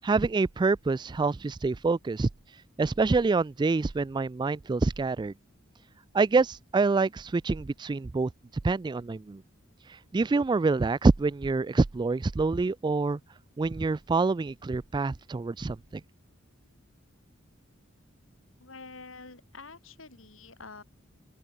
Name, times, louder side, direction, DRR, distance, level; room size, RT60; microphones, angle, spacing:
voice 1, 0.0-2.3 2.8-5.3 6.1-8.3 8.6-9.4 10.1-13.2 13.6-15.8, right 3 dB, 20° right, 0.3 m, -26 dB
voice 2, 18.6-20.8, left 4 dB, 75° left, 2.9 m, -47 dB
open air
head